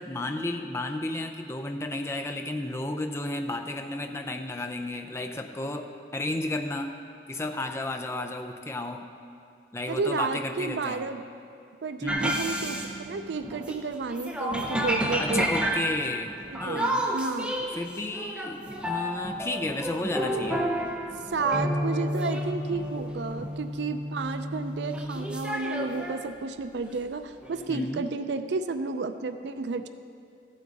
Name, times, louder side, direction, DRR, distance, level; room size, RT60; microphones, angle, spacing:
voice 1, 0.0-6.9 7.3-9.1 9.7-11.1 12.0-12.4 15.2-16.3 16.6-17.1 17.6-20.7 27.7-28.0, left 2 dB, 15° left, 5 dB, 0.4 m, -33 dB
voice 2, 9.9-11.2 11.8-12.8 13.1-15.5 16.5-17.6 21.3-29.9, right 4 dB, 80° right, 10 dB, 0.5 m, -31 dB
sound 1, 12.1-13.8 14.1-26.2 26.9-27.0 27.4-27.8, equal, 5° right, 0.8 m, -31 dB
15.0 x 8.3 x 4.0 m, 2.4 s
head